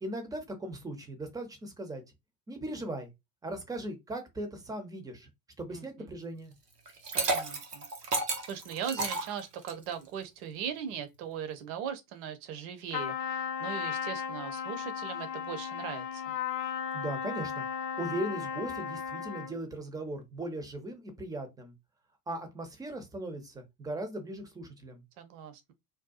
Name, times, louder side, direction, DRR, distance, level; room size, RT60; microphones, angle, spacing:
voice 1, 0.0-2.0 2.5-3.1 3.4-5.3 5.6-6.5 16.9-17.6 18.0-21.7 22.3-25.0, right 1 dB, 10° right, 0.4 m, -38 dB
voice 2, 5.7-6.1 7.1-7.9 8.5-16.3 25.2-25.7, right 8 dB, 50° right, 0.6 m, -39 dB
Liquid, 6.9-9.9, right 3 dB, 90° right, 0.7 m, -32 dB
Trumpet, 12.9-19.6, left 7 dB, 40° left, 0.5 m, -35 dB
2.6 x 2.2 x 2.3 m
figure-of-eight pair, 70°, 47 cm